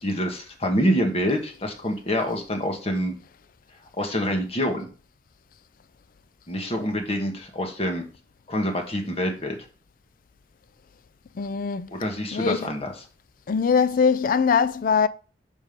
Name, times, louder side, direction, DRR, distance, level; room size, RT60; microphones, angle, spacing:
voice 1, 0.0-3.1 4.0-4.9 6.5-8.0 8.5-9.6 11.9-12.9, equal, 35° left, 1.4 m, -26 dB
voice 2, 11.4-11.9 12.3-12.7 13.5-15.1, left 6 dB, 50° left, 0.4 m, -22 dB
5.6 x 5.1 x 5.2 m
head